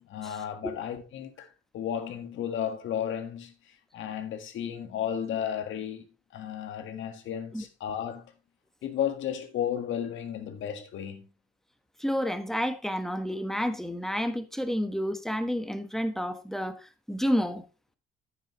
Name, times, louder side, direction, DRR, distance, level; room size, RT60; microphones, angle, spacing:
voice 1, 0.0-6.1 6.3-8.3 8.8-11.3, left 9 dB, 75° left, 1.7 m, -33 dB
voice 2, 12.0-17.6, equal, ahead, 1.3 m, -30 dB
9.2 x 8.7 x 3.1 m
cardioid pair, 90°, 20 cm